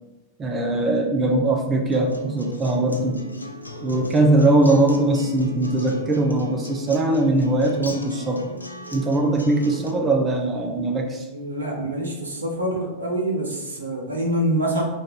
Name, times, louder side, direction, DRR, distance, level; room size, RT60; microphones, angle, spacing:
voice 1, 0.4-3.2 3.8-8.5 8.9-11.3, right 2 dB, 20° right, 2 dB, 0.5 m, -21 dB
Acoustic guitar, 1.9-9.9, left 1 dB, 85° left, 0.4 m, -37 dB
voice 2, 11.3-14.8, right 1 dB, 75° right, 1 dB, 0.7 m, -25 dB
3.2 x 2.6 x 4.3 m, 1.0 s
figure-of-eight pair, 90°, 0 cm